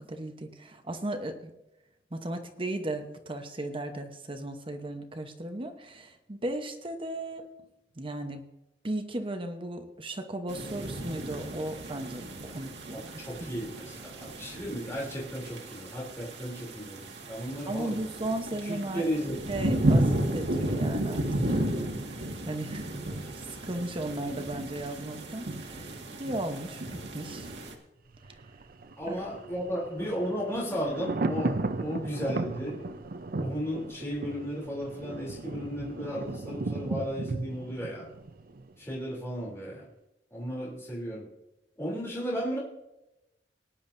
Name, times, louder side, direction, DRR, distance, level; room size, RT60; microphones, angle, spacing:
voice 1, 0.0-1.5 2.1-7.4 8.0-8.4 8.8-13.2 17.7-19.0 19.5-27.5 29.1-29.2, right 1 dB, 30° right, 6 dB, 1.0 m, -36 dB
sound 1, 10.5-27.7, right 1 dB, 80° right, 1.8 m, -33 dB
voice 2, 12.9-18.0 18.6-19.4 29.0-33.0 33.3-38.1 38.8-39.9 40.3-41.3 41.8-42.6, equal, 15° left, -5 dB, 3.1 m, -34 dB
Thunder, 28.1-39.0 39.3-39.4, right 2 dB, 55° right, 0.6 m, -36 dB
19.5 x 10.0 x 2.7 m, 0.94 s
head